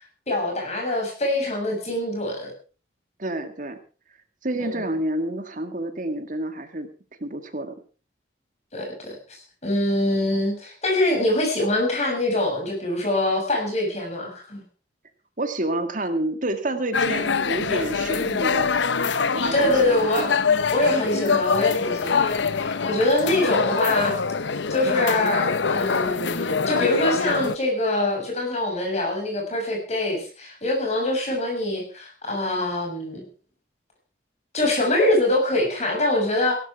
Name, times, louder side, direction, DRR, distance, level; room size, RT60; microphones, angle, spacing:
voice 1, 0.3-2.5 4.6-4.8 8.7-14.6 19.5-20.3 20.7-24.2 24.7-33.3 34.5-36.6, left 1 dB, 35° left, 1 dB, 6.8 m, -24 dB
voice 2, 3.2-3.8 4.4-6.9 7.2-7.8 15.4-18.7 19.3-20.4, right 1 dB, 45° right, 8 dB, 2.0 m, -29 dB
sound 1, 16.9-27.6, left 5 dB, 75° left, 0.8 m, -24 dB
17.0 x 13.0 x 4.7 m, 0.37 s
head